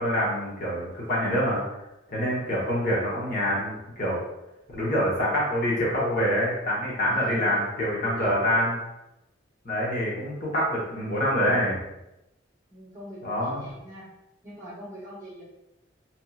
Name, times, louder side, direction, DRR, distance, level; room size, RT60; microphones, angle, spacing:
voice 1, 0.0-1.6 2.1-4.2 4.7-8.7 9.6-11.8 13.2-13.6, equal, 45° left, -5 dB, 0.9 m, -26 dB
voice 2, 7.1-7.6 8.2-8.3 12.7-14.1 14.4-15.4, equal, 15° right, -9 dB, 0.7 m, -42 dB
2.9 x 2.6 x 2.3 m, 0.93 s
head